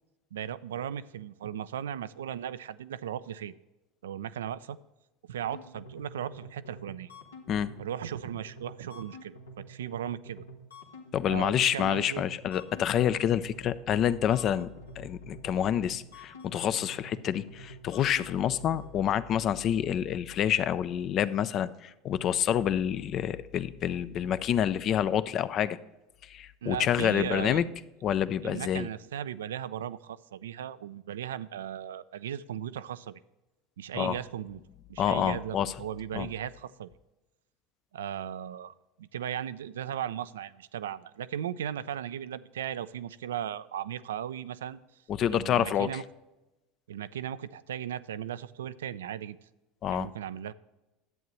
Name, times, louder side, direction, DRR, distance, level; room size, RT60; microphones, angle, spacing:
voice 1, 0.3-3.5 4.0-4.8 5.3-7.1 7.8-10.4 11.3-12.2 26.6-27.6 28.4-33.2 33.8-34.6 34.9-36.9 37.9-44.8 45.3-46.0 46.9-49.4 49.9-50.5, right 10 dB, 80° right, 15 dB, 0.3 m, -37 dB
sound 1, 5.5-19.0, right 1 dB, 85° left, 1.2 m, -48 dB
voice 2, 11.1-14.7 15.0-25.8 26.3-27.7 28.0-28.9 33.9-34.2 35.0-35.7 36.1-36.3 45.1-46.0 49.8-50.1, left 10 dB, 45° left, 15 dB, 0.4 m, -28 dB
11.0 x 8.1 x 3.1 m, 1.0 s
hypercardioid pair, 75°, 0 cm